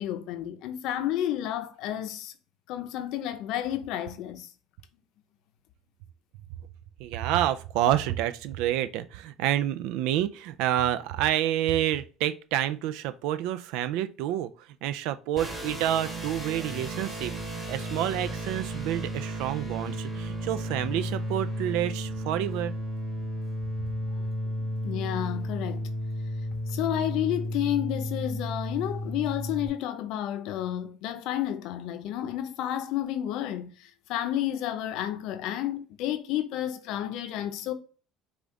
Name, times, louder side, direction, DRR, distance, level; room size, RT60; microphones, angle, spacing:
voice 1, 0.0-2.3 2.7-4.5 24.8-25.9 26.7-37.7, left 12 dB, 70° left, 0.6 m, -31 dB
voice 2, 7.0-14.5 14.8-17.3 17.7-22.7, right 12 dB, 75° right, 0.4 m, -28 dB
sound 1, 15.4-29.7, equal, 15° right, 1.6 m, -33 dB
5.0 x 2.4 x 3.8 m
supercardioid pair, 85°, 0 cm